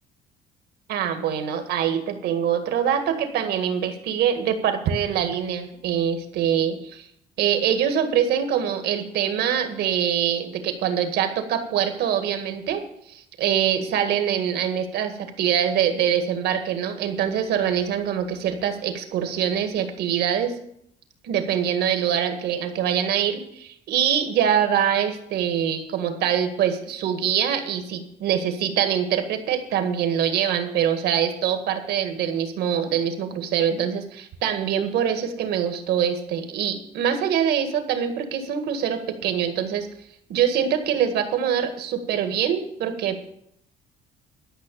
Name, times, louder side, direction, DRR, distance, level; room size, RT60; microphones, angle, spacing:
voice 1, 0.9-7.1 7.4-12.8 13.1-20.5 21.2-39.9 40.3-43.2, right 9 dB, 75° right, 7 dB, 1.8 m, -24 dB
12.0 x 6.0 x 8.5 m, 0.71 s
cardioid pair, 110°, 17 cm